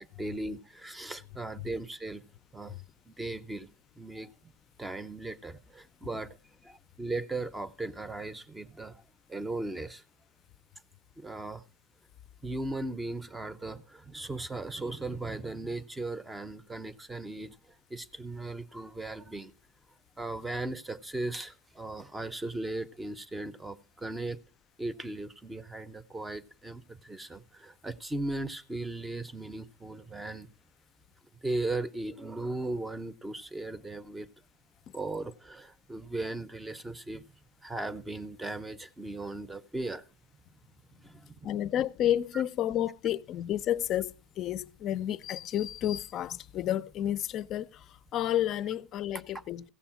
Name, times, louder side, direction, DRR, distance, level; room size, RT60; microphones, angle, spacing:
voice 1, 0.0-2.3 2.5-2.8 3.1-3.7 4.0-4.5 4.8-6.4 6.6-9.0 9.3-10.0 11.2-11.6 12.4-17.6 17.9-19.5 20.2-24.4 24.8-30.5 31.4-34.3 34.9-37.3 37.6-40.0 41.0-41.6 42.3-42.4, right 2 dB, 10° right, 0.6 m, -37 dB
voice 2, 41.4-47.8 48.1-49.6, left 11 dB, 40° left, 0.5 m, -31 dB
15.5 x 7.0 x 5.8 m
supercardioid pair, 135°, 0 cm